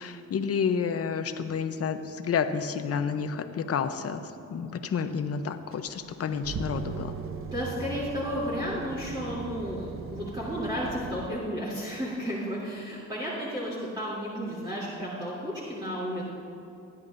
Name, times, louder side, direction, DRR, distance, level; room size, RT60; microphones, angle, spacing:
voice 1, 0.0-4.2 4.5-7.1, left 6 dB, 50° left, 8 dB, 0.9 m, -30 dB
sound 1, 5.7-11.3, right 5 dB, 45° right, 0.8 m, -38 dB
voice 2, 7.4-16.3, equal, 15° right, -8 dB, 3.2 m, -33 dB
19.5 x 10.5 x 2.7 m, 2.7 s
cardioid pair, 90°, 30 cm